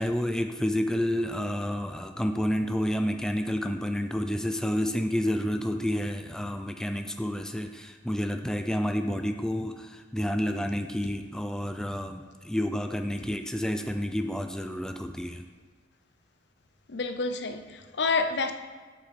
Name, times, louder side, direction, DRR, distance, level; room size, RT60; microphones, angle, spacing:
voice 1, 0.0-15.5, equal, 5° left, 0.4 m, -29 dB
voice 2, 16.9-18.5, left 4 dB, 65° left, 0.7 m, -29 dB
8.5 x 8.0 x 4.3 m
head